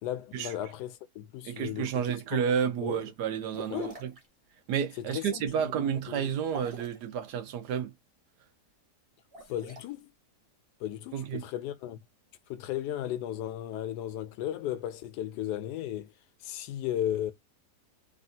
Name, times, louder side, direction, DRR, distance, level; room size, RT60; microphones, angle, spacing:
voice 1, 0.0-2.1 2.8-3.0 3.7-3.9 5.0-5.7 6.1-6.3 9.5-10.1 10.8-12.0 12.5-16.1 16.4-17.3, left 12 dB, 80° left, 1.1 m, -35 dB
voice 2, 1.4-4.1 4.7-7.9 11.1-11.4, right 8 dB, 80° right, 1.3 m, -31 dB
sound 1, 3.5-4.2 6.4-7.0 9.2-9.8, right 3 dB, 30° right, 0.7 m, -43 dB
3.4 x 2.3 x 2.6 m
omnidirectional pair, 1.7 m